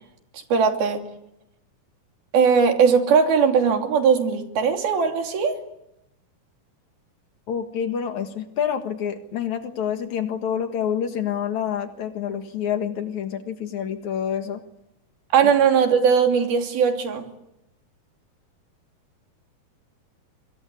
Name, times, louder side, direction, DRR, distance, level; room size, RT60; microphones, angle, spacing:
voice 1, 0.3-1.0 2.3-5.6 15.3-17.3, right 6 dB, 90° right, 4 dB, 4.7 m, -19 dB
voice 2, 7.5-14.6 15.4-15.5, left 8 dB, 60° left, 7 dB, 2.8 m, -27 dB
26.5 x 25.0 x 8.3 m, 0.87 s
omnidirectional pair, 4.2 m